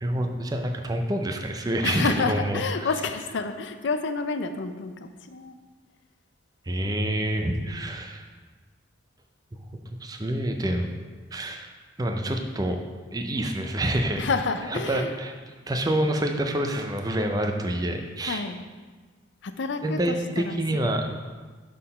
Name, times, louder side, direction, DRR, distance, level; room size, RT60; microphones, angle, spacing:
voice 1, 0.0-2.9 6.7-8.2 9.5-9.6 9.9-10.9 11.3-11.7 12.0-12.8 13.1-14.3 14.7-15.3 15.7-18.4 19.8-21.0, right 1 dB, 20° right, 4 dB, 0.5 m, -27 dB
voice 2, 1.8-4.9 5.3-5.6 7.4-7.9 14.2-15.2 18.2-18.6 19.4-20.6 21.0-21.1, left 4 dB, 70° left, 9 dB, 0.4 m, -29 dB
6.3 x 3.8 x 5.4 m, 1.4 s
head